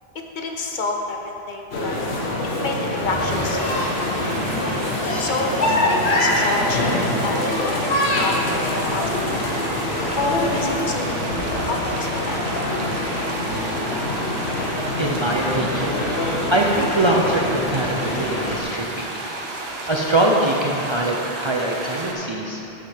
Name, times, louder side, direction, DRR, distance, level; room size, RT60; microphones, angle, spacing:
voice 1, 0.3-2.0 2.6-4.1 5.2-9.6 10.2-11.3 11.6-12.4, left 3 dB, 55° left, 2 dB, 0.8 m, -29 dB
sound 1, 1.7-18.6, left 1 dB, 85° left, 1.2 m, -24 dB
sound 2, 2.7-8.4, equal, 20° right, 1.3 m, -35 dB
sound 3, 3.2-22.1, right 2 dB, 75° right, 1.2 m, -32 dB
voice 2, 14.3-16.1 16.5-19.1 19.9-22.6, right 1 dB, 35° right, -2 dB, 0.5 m, -23 dB
8.1 x 6.5 x 4.9 m, 3.0 s
omnidirectional pair, 1.0 m